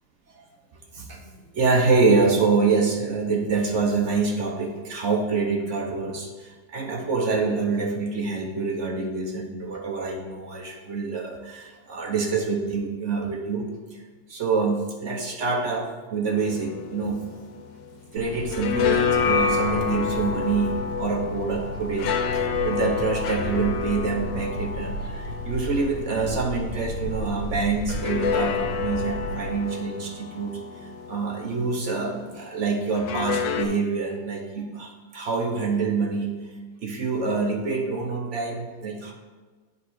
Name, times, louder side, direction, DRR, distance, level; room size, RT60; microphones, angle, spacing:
voice 1, 1.5-13.7 13.9-14.0 14.3-17.2 18.1-20.7 21.0-30.6 31.1-36.3 36.8-39.1, right 4 dB, 50° right, 1 dB, 1.0 m, -26 dB
sound 1, 16.4-18.1 18.3-27.0 27.9-32.0 32.9-33.7, left 6 dB, 80° left, 1.3 m, -29 dB
sound 2, 18.2-29.5, left 1 dB, 55° left, 1.3 m, -34 dB
8.0 x 3.3 x 6.3 m, 1.3 s
omnidirectional pair, 2.0 m